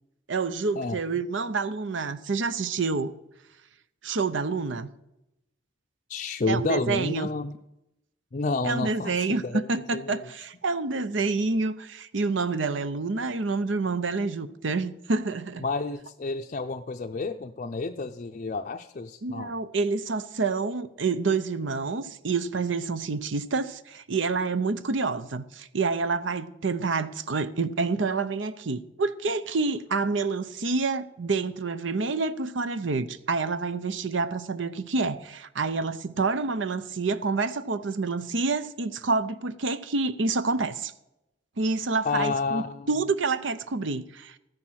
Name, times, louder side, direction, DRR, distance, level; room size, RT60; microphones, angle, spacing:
voice 1, 0.3-3.1 4.0-4.9 6.5-7.3 8.6-15.6 19.2-40.9 41.6-44.4, right 4 dB, 70° right, 0.7 m, -28 dB
voice 2, 6.1-7.6 8.3-9.6 9.9-10.2 15.6-19.5 42.0-42.9, left 3 dB, 40° left, 0.5 m, -30 dB
13.5 x 9.9 x 6.3 m
head